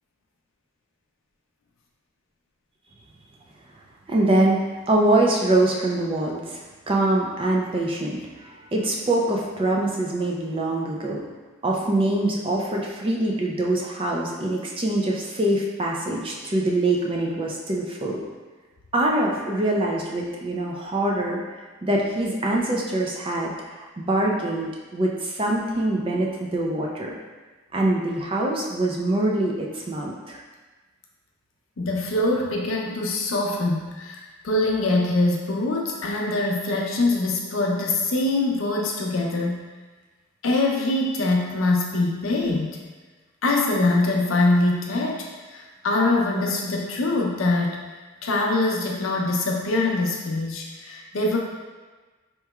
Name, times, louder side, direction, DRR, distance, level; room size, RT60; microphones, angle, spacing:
voice 1, 4.1-4.6 4.9-11.2 11.6-18.2 18.9-21.4 21.8-27.2 27.7-30.4, right 1 dB, 25° right, -2 dB, 0.4 m, -24 dB
voice 2, 31.8-39.7 40.4-42.8 43.4-47.8 48.2-51.4, left 2 dB, 70° left, -1 dB, 0.6 m, -23 dB
4.5 x 2.9 x 2.3 m, 1.3 s
head